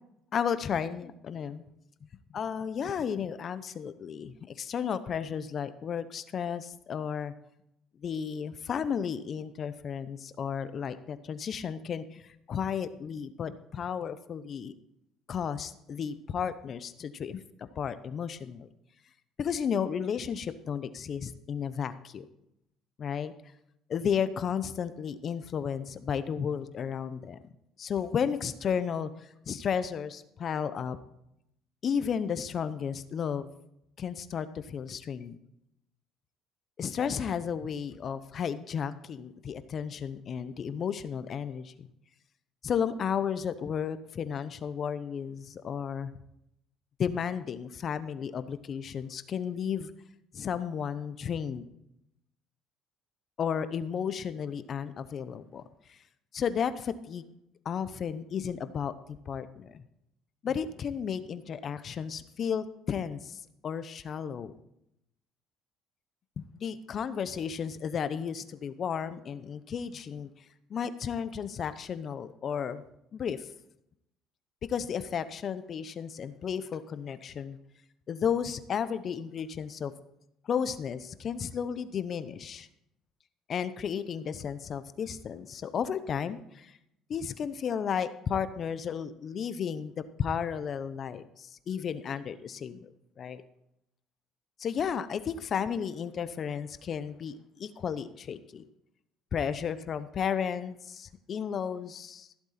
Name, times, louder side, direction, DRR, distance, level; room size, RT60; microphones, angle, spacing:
voice 1, 0.3-1.6 2.3-7.3 8.0-14.7 15.3-18.7 19.4-22.2 23.0-23.3 23.9-27.4 27.8-29.1 29.5-31.0 31.8-33.5 34.0-35.4 36.8-41.9 42.6-46.1 47.0-49.9 50.3-51.7 53.4-55.6 55.9-56.0 56.3-57.2 57.6-59.8 60.4-63.4 63.6-64.5 66.4-70.3 70.7-72.8 73.1-73.5 74.7-77.6 78.1-79.9 80.4-82.7 83.5-86.7 87.1-89.9 90.2-92.9 93.2-93.4 94.6-98.6 99.3-102.3, left 7 dB, 45° left, 13 dB, 0.7 m, -33 dB
14.5 x 8.0 x 4.2 m, 0.78 s
supercardioid pair, 90°, 0 cm